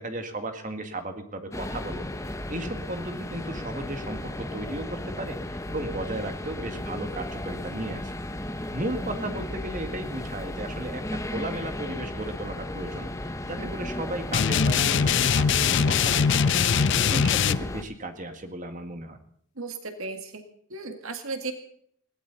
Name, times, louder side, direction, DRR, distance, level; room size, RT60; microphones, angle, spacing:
voice 1, 0.0-8.2 8.5-16.6 17.0-19.2, right 1 dB, 35° right, 6 dB, 2.0 m, -35 dB
sound 1, 1.5-17.8, left 1 dB, 15° left, 0.9 m, -35 dB
sound 2, 14.3-17.6, left 7 dB, 55° left, 0.5 m, -22 dB
voice 2, 19.6-20.4 20.7-21.5, right 3 dB, 65° right, 6 dB, 2.0 m, -35 dB
20.5 x 16.5 x 4.1 m, 0.64 s
head